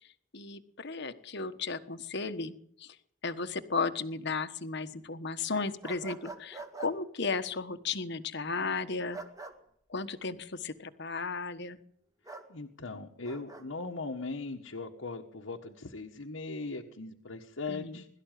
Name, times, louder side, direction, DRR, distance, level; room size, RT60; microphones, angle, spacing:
voice 1, 0.3-3.0 3.2-9.2 9.9-11.8 17.7-18.0, left 4 dB, 60° left, 10 dB, 1.4 m, -35 dB
sound 1, 5.8-6.9 9.1-9.6 12.3-12.5 13.2-13.6, right 3 dB, 15° right, 2.1 m, -44 dB
voice 2, 12.5-18.1, left 3 dB, 80° left, 1 dB, 1.6 m, -39 dB
22.0 x 13.0 x 9.3 m, 0.69 s
head